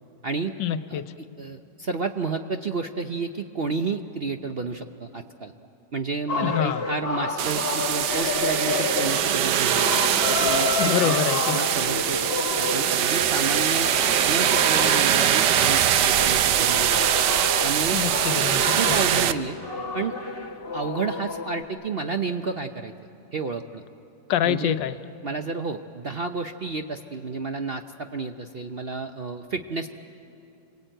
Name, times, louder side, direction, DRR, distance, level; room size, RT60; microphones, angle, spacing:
voice 1, 0.6-1.1 6.4-6.8 10.8-11.6 17.9-19.0 24.3-24.9, left 10 dB, 85° left, 11 dB, 1.5 m, -26 dB
voice 2, 1.4-5.5 5.9-9.9 10.3-11.2 11.5-12.3 12.6-13.9 14.3-17.0 17.6-18.0 18.7-19.6 19.9-20.2 20.7-22.9 23.3-23.8 24.4-24.8 25.2-29.9, right 4 dB, 55° right, 6 dB, 0.7 m, -31 dB
sound 1, 6.3-21.6, left 4 dB, 35° left, 1.6 m, -30 dB
sound 2, 7.4-19.3, right 10 dB, 75° right, 1.4 m, -22 dB
28.0 x 22.0 x 9.0 m, 2.8 s
omnidirectional pair, 1.9 m